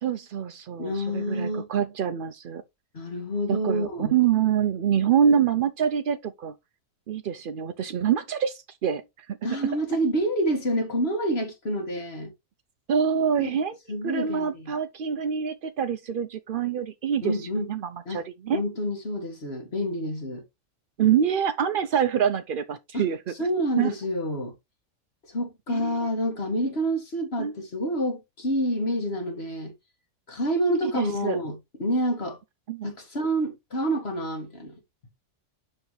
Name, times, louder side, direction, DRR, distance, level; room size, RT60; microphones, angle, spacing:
voice 1, 0.0-2.6 3.5-6.5 7.1-9.0 9.3-9.4 12.9-13.8 14.0-17.4 17.7-18.6 21.0-23.3 23.8-23.9 25.7-26.1 27.4-27.6 31.0-31.4 32.7-32.9, right 8 dB, 70° right, 0.5 m, -25 dB
voice 2, 0.8-1.7 2.9-4.2 9.4-12.3 13.4-13.6 13.9-14.7 17.2-17.7 18.1-18.2 18.5-20.4 22.9-24.5 25.3-29.7 30.3-32.4 32.8-34.8, equal, 45° left, 2.0 m, -28 dB
6.9 x 5.8 x 3.1 m
omnidirectional pair, 1.5 m